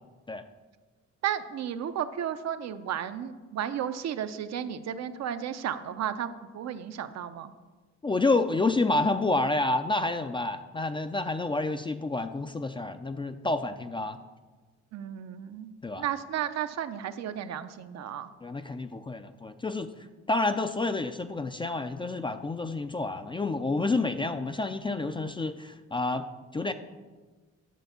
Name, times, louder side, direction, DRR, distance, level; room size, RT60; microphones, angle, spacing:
voice 1, 1.2-7.5 14.9-18.3, right 9 dB, 60° right, 11 dB, 0.5 m, -33 dB
voice 2, 8.0-14.2 15.8-16.0 18.4-19.9 20.3-26.7, left 2 dB, 15° left, 9 dB, 0.3 m, -29 dB
9.3 x 3.5 x 6.8 m, 1.3 s
cardioid pair, 90°, 30 cm